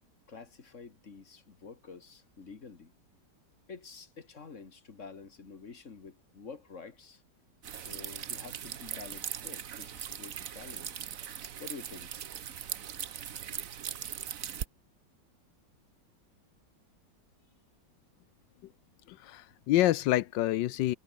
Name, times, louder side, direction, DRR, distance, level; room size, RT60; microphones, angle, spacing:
voice 1, 0.3-2.9 3.7-7.2 7.7-11.1 11.6-12.3, left 5 dB, 40° left, 2.1 m, -48 dB
sound 1, 7.6-14.6, right 9 dB, 50° right, 1.3 m, -40 dB
voice 2, 19.1-21.0, left 15 dB, 80° left, 1.3 m, -27 dB
omnidirectional pair, 2.0 m